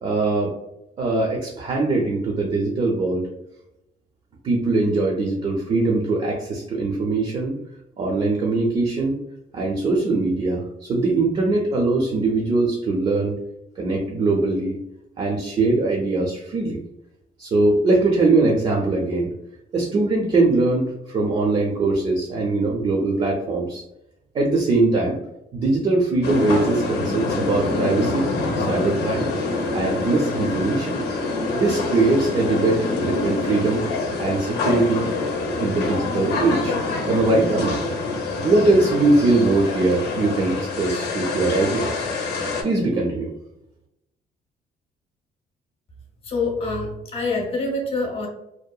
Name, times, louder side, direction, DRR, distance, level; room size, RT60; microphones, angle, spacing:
voice 1, 0.0-0.6 1.0-3.3 4.4-7.6 8.0-9.2 9.5-13.4 13.8-14.8 15.2-16.8 17.4-19.3 19.7-23.8 24.3-25.2 25.5-28.3 28.6-29.3 29.7-31.0 31.5-33.8 34.2-35.1 35.6-36.8 37.1-37.8 38.4-42.0 42.6-43.3, right 3 dB, 35° right, 0 dB, 0.4 m, -21 dB
sound 1, 26.2-42.6, left 3 dB, 85° left, 0.6 m, -26 dB
voice 2, 46.3-48.3, left 3 dB, 35° left, 0 dB, 0.7 m, -25 dB
2.7 x 2.0 x 2.2 m, 0.86 s
cardioid pair, 155°, 17 cm